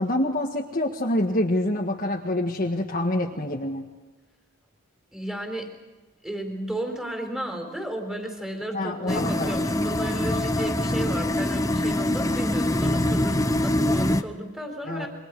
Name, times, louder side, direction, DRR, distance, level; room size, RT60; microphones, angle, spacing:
voice 1, 0.0-3.9 8.7-9.6 14.9-15.1, left 1 dB, 40° left, -1 dB, 1.6 m, -26 dB
voice 2, 5.1-5.7 6.2-15.1, right 1 dB, 5° right, 3 dB, 4.0 m, -33 dB
sound 1, 9.1-14.2, left 1 dB, 15° left, 0.9 m, -24 dB
28.0 x 24.0 x 4.8 m, 1.2 s
head